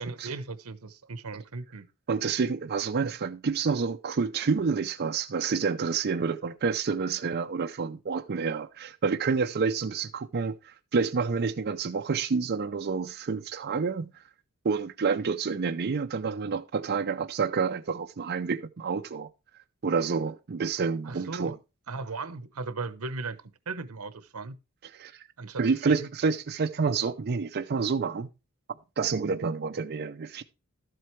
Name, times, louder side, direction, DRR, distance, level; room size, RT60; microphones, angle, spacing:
voice 1, 0.0-1.9 21.0-21.5 21.9-24.6 25.4-26.1, right 3 dB, 70° right, 0.9 m, -37 dB
voice 2, 2.1-14.2 14.6-19.3 19.8-21.5 24.9-25.2 25.6-28.3 29.0-30.4, right 5 dB, 45° right, 0.5 m, -28 dB
12.5 x 7.7 x 3.2 m
head